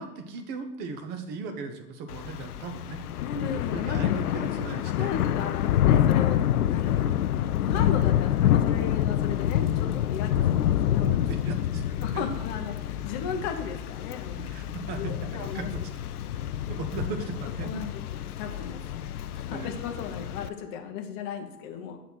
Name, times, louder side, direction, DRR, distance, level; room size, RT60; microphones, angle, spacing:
voice 1, 0.0-3.0 3.5-5.1 10.2-10.6 11.3-12.0 14.3-15.9 16.7-17.8 19.5-19.8, right 4 dB, 20° right, 7 dB, 0.7 m, -37 dB
Thunder / Rain, 2.1-20.5, left 11 dB, 65° left, 0.5 m, -27 dB
voice 2, 3.2-4.2 5.0-7.1 7.6-11.4 12.0-14.5 15.0-15.7 16.3-16.4 17.6-17.9 18.4-18.8 19.1-22.0, left 6 dB, 30° left, 3 dB, 0.8 m, -36 dB
7.7 x 4.0 x 6.1 m, 0.96 s
hypercardioid pair, 115°, 50 cm